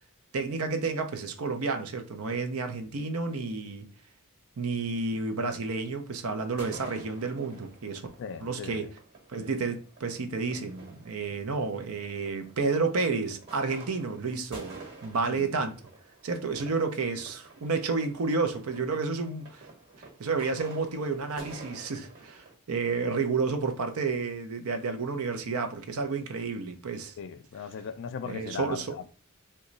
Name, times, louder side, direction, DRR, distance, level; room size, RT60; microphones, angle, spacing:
voice 1, 0.3-3.9 4.6-8.1 8.4-8.9 9.3-15.7 16.2-19.7 20.2-27.2 28.3-29.0, right 4 dB, 70° right, 0.6 m, -31 dB
sound 1, 6.5-22.5, right 3 dB, 50° right, 1.3 m, -49 dB
voice 2, 8.2-8.9 15.3-15.5 27.2-29.1, left 6 dB, 55° left, 0.3 m, -38 dB
3.0 x 2.2 x 3.8 m
head